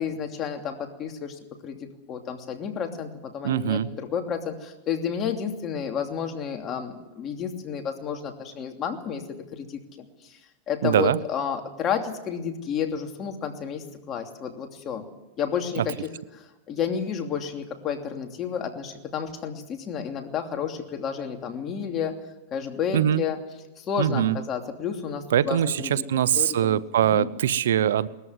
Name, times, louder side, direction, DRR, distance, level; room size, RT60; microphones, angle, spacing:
voice 1, 0.0-9.2 9.5-10.4 10.7-15.1 15.4-22.2 22.5-23.4 23.8-26.0 26.3-27.3, left 7 dB, 30° left, 4 dB, 2.9 m, -31 dB
voice 2, 3.4-3.9 10.8-11.2 15.8-15.9 22.9-23.2 24.0-24.4 25.3-28.1, right 10 dB, 80° right, 18 dB, 0.8 m, -22 dB
20.5 x 14.0 x 9.7 m, 1.0 s
hypercardioid pair, 125°, 0 cm